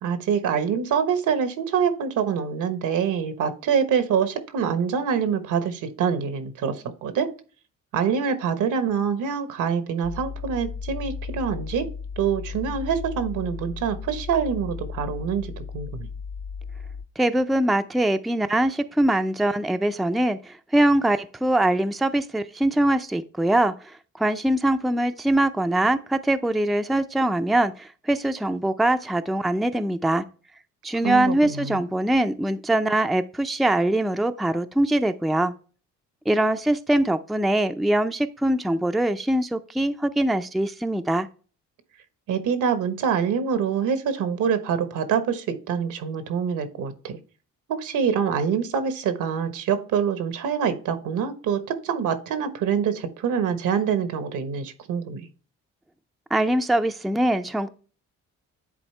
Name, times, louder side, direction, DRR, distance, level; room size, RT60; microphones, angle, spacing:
voice 1, 0.0-7.3 7.9-11.9 12.2-16.1 31.0-31.8 42.3-47.2 47.7-55.3, right 7 dB, 80° right, 1.2 m, -25 dB
sound 1, 10.0-17.1, left 5 dB, 50° left, 0.7 m, -35 dB
voice 2, 17.2-30.2 30.8-35.5 36.3-41.3 56.3-57.7, right 1 dB, ahead, 0.4 m, -23 dB
10.0 x 4.1 x 3.2 m
cardioid pair, 90°, 30 cm